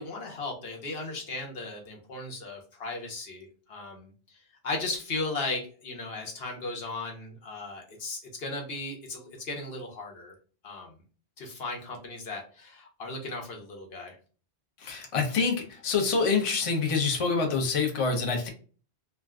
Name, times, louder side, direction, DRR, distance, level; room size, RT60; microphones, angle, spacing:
voice 1, 0.0-4.1 4.6-10.3 10.6-10.9 11.4-14.1, left 3 dB, 65° left, 1 dB, 1.0 m, -36 dB
voice 2, 14.8-18.5, left 4 dB, 40° left, 2 dB, 0.5 m, -26 dB
2.4 x 2.2 x 3.4 m, 0.38 s
omnidirectional pair, 1.2 m